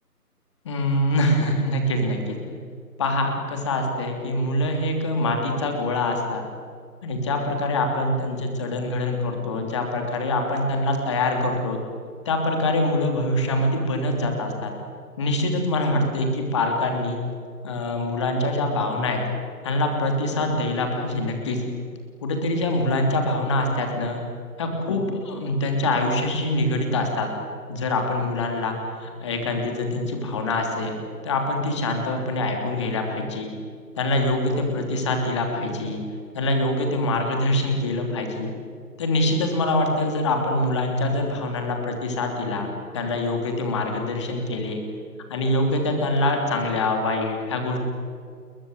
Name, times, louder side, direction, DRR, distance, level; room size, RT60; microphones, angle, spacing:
voice 1, 0.6-2.3 3.0-6.4 7.0-11.8 12.2-14.7 15.2-17.2 17.6-19.2 19.6-21.6 22.2-24.2 24.6-27.3 27.7-28.7 29.0-33.5 33.9-36.0 36.3-38.5 39.0-44.8 45.3-47.8, left 1 dB, 20° left, 3 dB, 3.1 m, -24 dB
28.0 x 22.5 x 9.2 m, 2.1 s
figure-of-eight pair, 160°, 48 cm